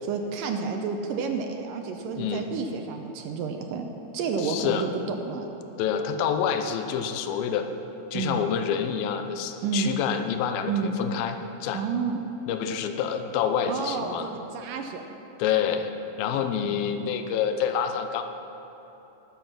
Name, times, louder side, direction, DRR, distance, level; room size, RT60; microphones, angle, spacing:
voice 1, 0.0-3.9 4.1-5.5 8.1-8.4 9.6-9.9 10.7-11.0 11.7-12.2 13.7-15.0 16.4-16.8, right 5 dB, 80° right, 4 dB, 2.2 m, -30 dB
voice 2, 2.0-2.5 4.4-4.9 5.8-7.7 8.1-11.8 12.5-14.3 15.4-15.9 16.2-18.2, left 8 dB, 85° left, 7 dB, 2.6 m, -27 dB
19.0 x 7.0 x 5.9 m, 3.0 s
omnidirectional pair, 4.2 m